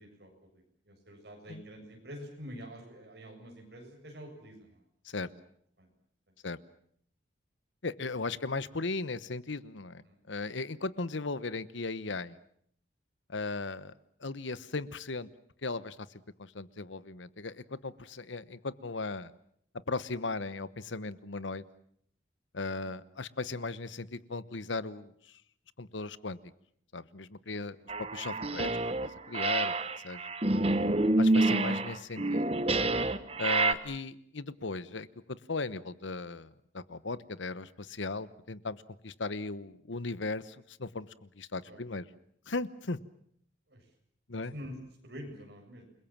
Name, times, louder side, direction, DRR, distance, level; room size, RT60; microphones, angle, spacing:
voice 1, 0.0-4.8 5.8-5.9 10.1-10.2 27.5-27.7 41.6-41.8 43.7-43.8 44.4-44.8 45.0-45.9, equal, 55° right, 2 dB, 7.6 m, -47 dB
voice 2, 7.8-12.4 13.3-13.9 14.2-15.3 15.6-16.0 16.4-19.3 19.9-21.6 22.5-25.4 25.8-26.4 26.9-27.8 28.1-28.7 29.0-29.7 30.0-30.3 31.2-32.4 33.4-42.1 42.5-43.0 44.3-44.5, left 3 dB, 80° left, 16 dB, 1.1 m, -37 dB
sound 1, 27.9-29.1 29.3-33.7, right 2 dB, 30° right, 1.2 m, -28 dB
29.0 x 22.0 x 7.5 m, 0.64 s
head